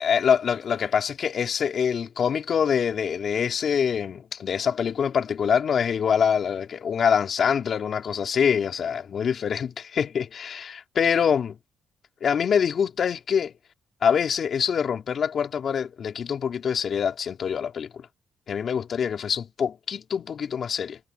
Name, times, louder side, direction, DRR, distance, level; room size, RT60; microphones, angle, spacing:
voice 1, 0.0-11.6 12.2-13.5 14.0-18.0 18.5-21.0, left 7 dB, 55° left, 3.1 m, -25 dB
cardioid pair, 90°, 0 cm